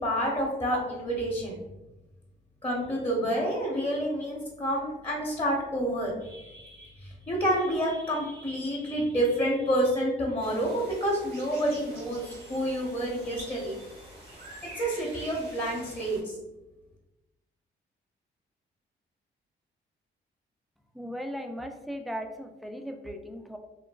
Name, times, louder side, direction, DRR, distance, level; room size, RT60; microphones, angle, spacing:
voice 1, 0.0-1.6 2.6-13.7 14.8-16.3, equal, 25° left, -3 dB, 0.8 m, -29 dB
sound 1, 10.4-16.2, right 1 dB, 75° right, 1.1 m, -47 dB
voice 2, 20.9-23.6, equal, ahead, 4 dB, 0.3 m, -37 dB
3.1 x 2.2 x 2.3 m, 1.0 s
cardioid pair, 60°, 20 cm